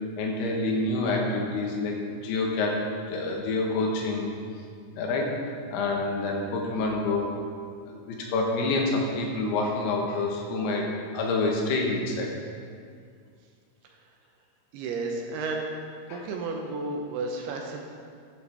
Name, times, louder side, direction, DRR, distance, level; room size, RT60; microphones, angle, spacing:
voice 1, 0.2-4.3 4.9-5.3 5.7-7.3 7.9-10.9 11.1-12.3 16.1-16.2, left 2 dB, 80° left, 0 dB, 3.1 m, -27 dB
voice 2, 14.7-15.6 16.1-17.8, right 3 dB, 80° right, 1 dB, 2.7 m, -32 dB
11.0 x 9.1 x 3.4 m, 2.2 s
omnidirectional pair, 4.8 m